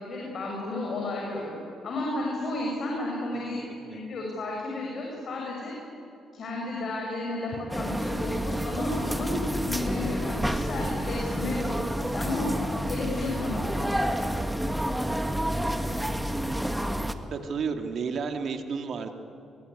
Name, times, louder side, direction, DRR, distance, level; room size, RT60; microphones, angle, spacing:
voice 1, 0.0-1.6 1.8-3.6 3.9-5.7 6.3-12.5 12.9-13.6, left 2 dB, 55° left, -1 dB, 6.5 m, -32 dB
sound 1, 7.7-17.1, equal, 5° right, 1.7 m, -29 dB
voice 2, 17.3-19.1, right 5 dB, 60° right, 5 dB, 2.4 m, -31 dB
24.5 x 23.5 x 9.8 m, 2.8 s
cardioid pair, 90°, 0 cm